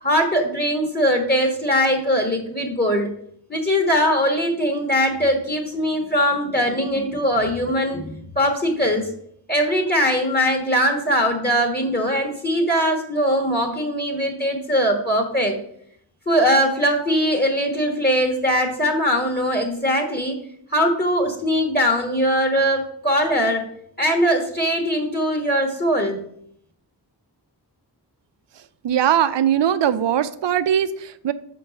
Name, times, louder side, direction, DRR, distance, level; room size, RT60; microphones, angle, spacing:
voice 1, 0.0-3.1 3.5-9.1 9.5-15.6 16.3-20.4 20.7-23.7 24.0-26.2, equal, 25° left, 3 dB, 1.4 m, -21 dB
voice 2, 28.8-31.3, right 9 dB, 90° right, 13 dB, 0.5 m, -20 dB
6.0 x 4.5 x 5.2 m, 0.68 s
wide cardioid pair, 55°, 42 cm